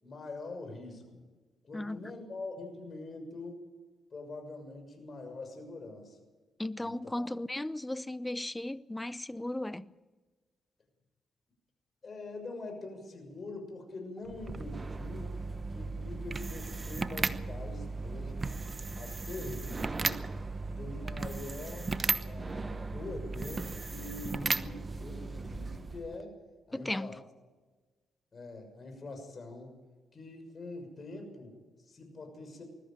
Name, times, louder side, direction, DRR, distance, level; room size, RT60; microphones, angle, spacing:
voice 1, 0.0-1.2 1.6-3.6 4.1-6.2 6.8-7.3 12.0-15.3 15.7-18.6 18.9-20.2 20.6-21.9 22.2-26.3 26.7-27.2 28.3-29.7 30.1-32.6, left 2 dB, 45° left, 6.4 m, -44 dB
voice 2, 6.6-9.9 26.7-27.1, left 1 dB, 10° left, 0.7 m, -36 dB
sound 1, 14.2-26.2, right 3 dB, 30° right, 1.0 m, -36 dB
21.0 x 14.0 x 9.0 m
cardioid pair, 75°, 0 cm